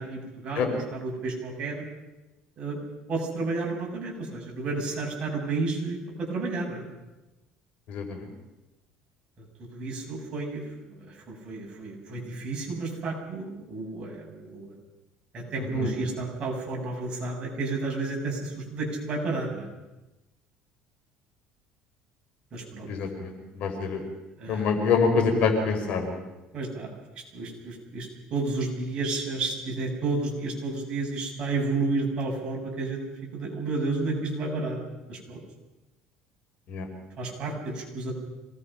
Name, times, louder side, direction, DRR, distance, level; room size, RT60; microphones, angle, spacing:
voice 1, 0.0-1.8 2.6-2.8 3.1-6.8 9.7-10.6 11.0-14.7 15.3-19.7 22.5-22.9 24.4-24.7 26.5-26.9 27.3-33.0 33.3-34.8 35.1-35.4 37.2-38.1, right 3 dB, 40° right, -2 dB, 7.9 m, -31 dB
voice 2, 22.9-23.3 23.6-24.0 24.5-26.2 36.7-36.8, left 5 dB, 60° left, 4 dB, 4.7 m, -25 dB
26.0 x 19.5 x 5.8 m, 1.0 s
cardioid pair, 130°, 3 cm